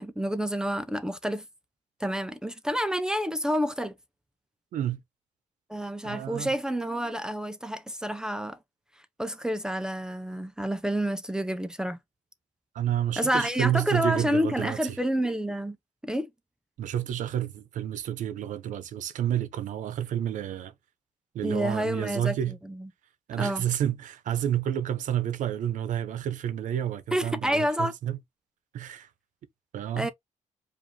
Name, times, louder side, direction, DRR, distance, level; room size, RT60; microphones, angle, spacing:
voice 1, 0.0-1.5 2.0-4.0 5.7-8.6 9.2-12.0 13.2-15.8 16.0-16.3 21.4-22.9 23.4-23.6 27.1-27.9 30.0-30.1, equal, 5° right, 0.5 m, -29 dB
voice 2, 6.0-6.5 12.7-14.8 16.8-20.7 21.3-22.6 23.3-28.2 28.7-29.1 29.7-30.1, right 10 dB, 90° right, 0.7 m, -30 dB
4.9 x 2.6 x 2.7 m
cardioid pair, 125°, 13 cm